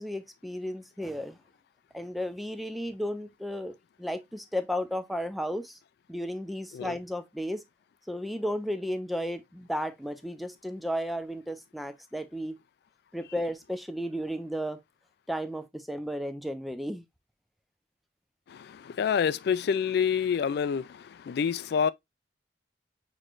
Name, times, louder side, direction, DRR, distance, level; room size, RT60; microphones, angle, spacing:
voice 1, 0.0-1.4 1.9-5.8 6.1-7.6 8.1-12.5 13.1-14.8 15.3-17.0, equal, ahead, 0.5 m, -34 dB
voice 2, 18.5-21.9, left 7 dB, 60° left, 0.3 m, -28 dB
6.3 x 3.1 x 2.4 m
head